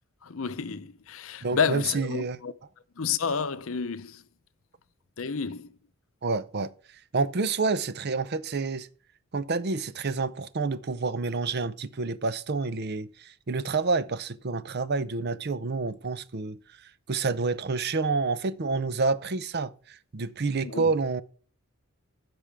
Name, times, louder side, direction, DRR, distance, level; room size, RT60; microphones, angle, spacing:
voice 1, 0.2-2.5 3.0-4.2 5.2-5.7 20.6-20.9, left 6 dB, 70° left, 0.7 m, -30 dB
voice 2, 1.4-2.4 6.2-6.7 7.1-8.9 9.3-21.2, right 4 dB, 50° right, 0.6 m, -29 dB
15.0 x 6.1 x 3.4 m
head